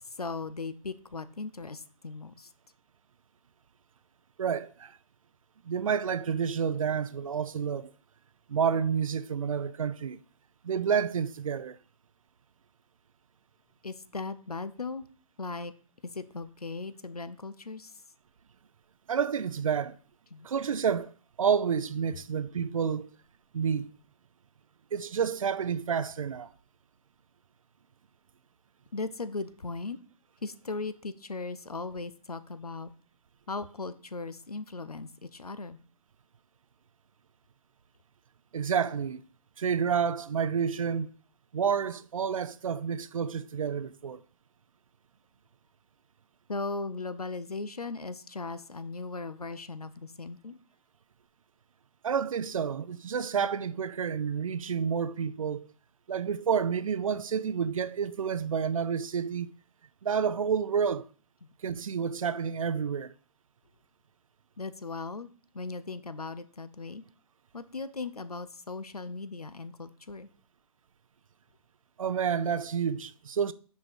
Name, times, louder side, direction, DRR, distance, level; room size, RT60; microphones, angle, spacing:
voice 1, 0.2-2.5 13.8-15.0 15.4-15.7 16.1-17.9 20.3-20.5 28.9-30.0 30.4-32.9 33.5-35.8 46.5-50.6 64.6-65.3 65.5-67.0 67.5-70.3, left 3 dB, 85° left, 0.7 m, -38 dB
voice 2, 4.4-5.0 5.6-7.9 8.5-10.2 10.6-11.8 19.1-20.0 20.4-21.1 21.4-23.1 23.5-23.9 24.9-26.5 38.5-39.2 39.6-41.1 41.5-44.2 52.0-55.7 56.1-59.5 60.0-61.1 61.6-63.1 72.0-73.5, right 7 dB, 60° right, 0.5 m, -29 dB
6.2 x 4.8 x 5.3 m
figure-of-eight pair, 130°, 19 cm